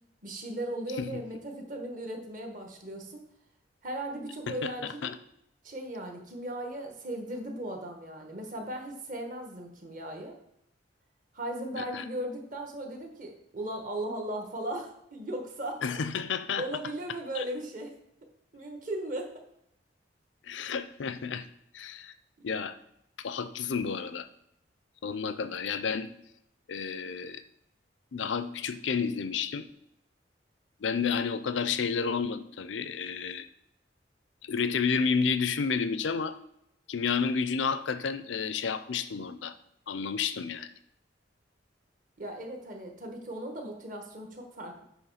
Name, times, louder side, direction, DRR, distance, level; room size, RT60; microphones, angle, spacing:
voice 1, 0.2-3.2 3.8-5.1 5.6-10.3 11.3-15.8 16.6-17.9 18.5-19.3 42.2-44.8, right 1 dB, 45° right, 2 dB, 1.4 m, -37 dB
voice 2, 4.5-5.1 11.8-12.0 15.8-16.6 17.4-17.5 20.4-21.5 21.7-22.1 22.4-22.7 23.2-24.3 25.0-26.1 26.7-27.4 28.1-29.7 30.8-33.5 34.4-36.4 36.9-39.5 39.9-40.7, left 5 dB, 85° left, 12 dB, 0.5 m, -31 dB
9.1 x 3.1 x 5.6 m, 0.78 s
head